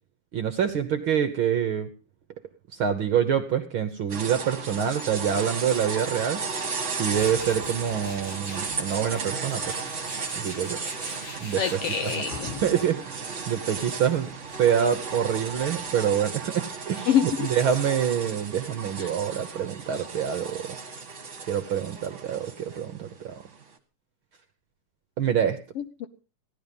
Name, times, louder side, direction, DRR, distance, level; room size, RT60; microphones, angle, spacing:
voice 1, 0.3-1.9 2.7-6.4 6.9-9.9 10.3-10.8 11.4-11.6 12.0-12.2 12.6-14.3 14.6-20.7 21.5-23.3 25.2-25.6, right 8 dB, 60° right, 8 dB, 1.4 m, -26 dB
sound 1, 4.1-23.6, right 4 dB, 30° right, 1.6 m, -35 dB
Tools, 7.1-15.9, left 3 dB, 90° left, 8.9 m, -44 dB
voice 2, 11.6-12.5 17.1-17.5 19.0-19.1 25.8-26.1, left 9 dB, 65° left, 9 dB, 1.6 m, -26 dB
16.5 x 12.0 x 5.3 m, 0.35 s
omnidirectional pair, 3.4 m